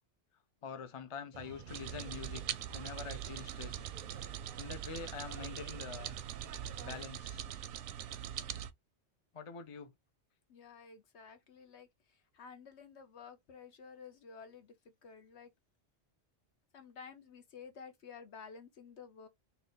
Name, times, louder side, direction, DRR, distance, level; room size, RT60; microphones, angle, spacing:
voice 1, 0.6-2.4 2.7-3.8 4.6-6.2 6.8-7.4 9.3-9.9, left 6 dB, 35° left, 0.7 m, -45 dB
sound 1, 1.3-7.0, right 7 dB, 55° right, 0.6 m, -51 dB
sound 2, 1.7-8.7, right 10 dB, 90° right, 0.9 m, -42 dB
voice 2, 10.5-14.7 15.0-15.5 16.7-19.3, left 6 dB, 70° left, 1.2 m, -52 dB
3.9 x 2.6 x 3.9 m
omnidirectional pair, 1.2 m